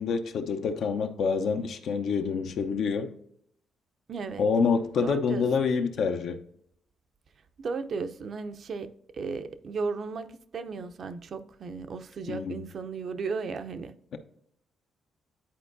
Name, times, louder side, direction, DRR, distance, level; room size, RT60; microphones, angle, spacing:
voice 1, 0.0-3.1 4.4-6.4 12.3-12.6, left 5 dB, 65° left, 0.7 m, -27 dB
voice 2, 4.1-4.4 5.0-5.4 7.6-8.9 9.1-13.9, right 4 dB, 55° right, 0.6 m, -35 dB
10.0 x 4.3 x 2.6 m
cardioid pair, 90°, 0 cm